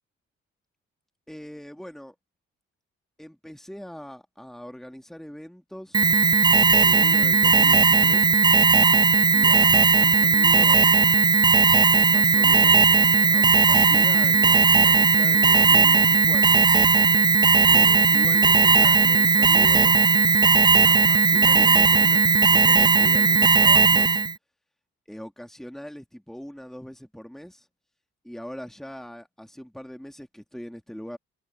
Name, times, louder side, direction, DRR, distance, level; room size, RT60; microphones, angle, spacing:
voice 1, 1.3-2.1 3.2-6.0 6.7-8.4 9.3-11.2 12.1-16.7 17.6-20.0 20.8-24.2 25.1-27.7 28.2-31.2, equal, ahead, 2.7 m, -41 dB
Alarm, 5.9-24.3, right 4 dB, 15° right, 0.3 m, -17 dB
supercardioid pair, 55°, 29 cm